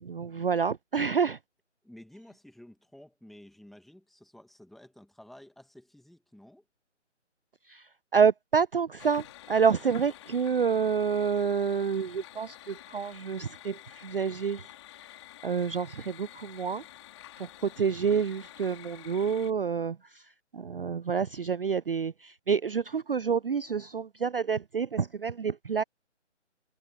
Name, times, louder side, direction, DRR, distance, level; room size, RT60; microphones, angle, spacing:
voice 1, 0.0-1.4 7.7-7.8 8.1-14.6 15.4-16.8 17.6-20.0 20.5-25.8, right 6 dB, 50° right, 0.4 m, -28 dB
voice 2, 1.8-6.6, left 1 dB, ahead, 2.1 m, -52 dB
sound 1, 9.0-19.5, left 13 dB, 25° left, 3.8 m, -50 dB
figure-of-eight pair, 150°, 36 cm